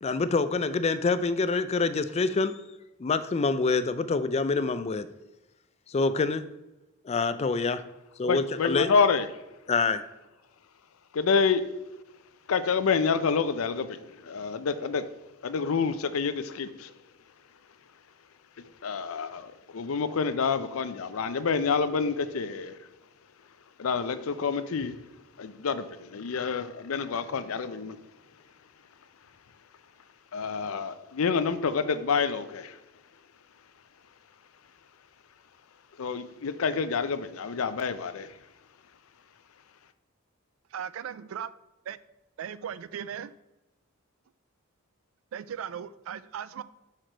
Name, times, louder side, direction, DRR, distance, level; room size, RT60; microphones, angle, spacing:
voice 1, 0.0-2.5 3.0-5.1 5.9-6.4 7.1-7.8 8.2-8.9 9.7-10.1, left 4 dB, 30° left, 0.4 m, -26 dB
voice 2, 8.3-9.3 11.1-11.6 12.5-15.0 15.4-16.9 18.8-22.8 23.8-25.0 25.4-28.0 30.3-32.8 36.0-38.3, left 5 dB, 85° left, 0.5 m, -28 dB
voice 3, 40.7-41.5 41.9-42.0 42.4-43.3 45.3-46.6, right 8 dB, 70° right, 0.3 m, -37 dB
5.8 x 4.9 x 4.4 m
head